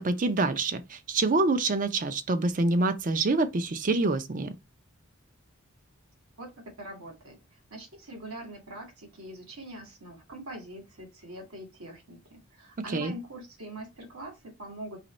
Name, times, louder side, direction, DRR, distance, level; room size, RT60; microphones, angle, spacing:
voice 1, 0.0-4.5 12.9-13.1, right 3 dB, 35° right, 0.5 m, -26 dB
voice 2, 6.8-7.4 7.7-15.0, right 1 dB, 80° right, 1.7 m, -43 dB
4.1 x 3.0 x 4.2 m
head